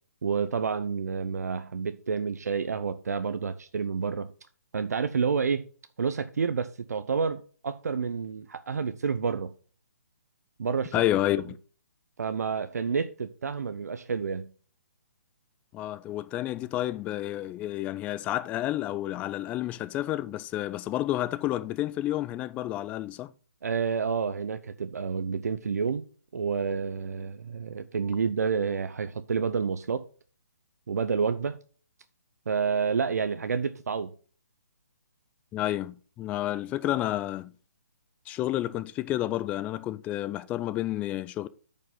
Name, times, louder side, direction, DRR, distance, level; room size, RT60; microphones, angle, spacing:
voice 1, 0.2-4.3 4.7-5.7 6.0-9.5 10.6-11.1 12.2-14.5 23.6-26.1 26.3-30.0 30.9-31.6 32.5-34.1, right 5 dB, 70° right, 0.7 m, -29 dB
voice 2, 10.9-11.6 15.7-23.3 35.5-37.5 38.3-41.5, left 14 dB, 15° left, 0.4 m, -30 dB
9.3 x 5.4 x 3.8 m
hypercardioid pair, 145°, 9 cm